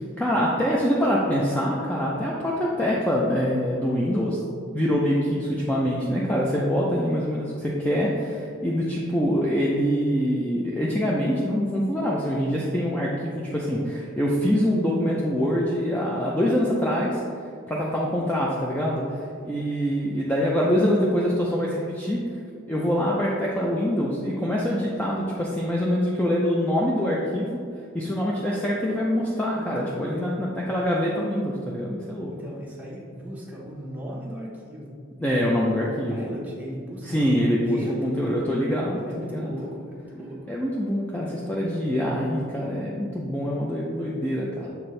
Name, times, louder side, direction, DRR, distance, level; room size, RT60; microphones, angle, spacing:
voice 1, 0.2-4.4 4.7-17.2 17.7-19.0 19.4-22.2 22.7-27.6 27.9-32.3 35.2-36.3 37.0-39.5 40.5-44.7, equal, 10° left, -4 dB, 0.5 m, -24 dB
voice 2, 29.5-30.4 32.3-34.9 35.7-38.4 39.1-40.5, equal, 10° right, -5 dB, 1.0 m, -37 dB
6.8 x 4.3 x 3.2 m, 2.3 s
head